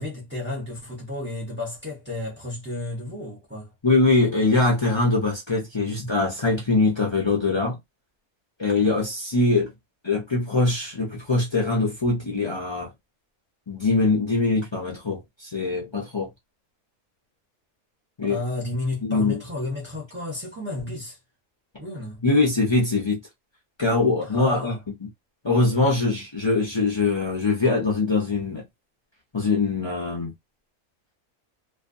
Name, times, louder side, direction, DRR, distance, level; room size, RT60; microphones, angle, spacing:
voice 1, 0.0-3.7 18.2-21.2 21.8-22.2 24.2-24.8, left 2 dB, 10° right, 0.7 m, -32 dB
voice 2, 3.8-7.8 8.6-9.7 10.0-12.9 13.7-16.3 18.2-18.4 19.0-19.4 22.2-23.2 23.8-24.7 25.4-28.6 29.3-30.3, left 3 dB, 35° left, 0.4 m, -22 dB
2.4 x 2.2 x 2.6 m
omnidirectional pair, 1.5 m